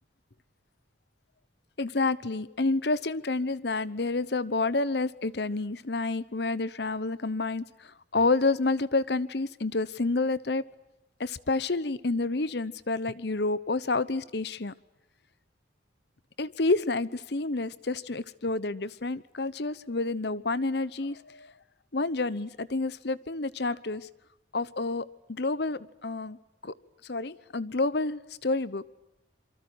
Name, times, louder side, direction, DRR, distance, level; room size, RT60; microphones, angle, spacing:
voice 1, 1.8-10.6 11.2-14.7 16.4-21.5 21.9-24.1 24.5-26.4 26.6-26.7 27.0-28.8, left 3 dB, 60° left, 1.0 m, -29 dB
27.0 x 24.5 x 8.0 m
head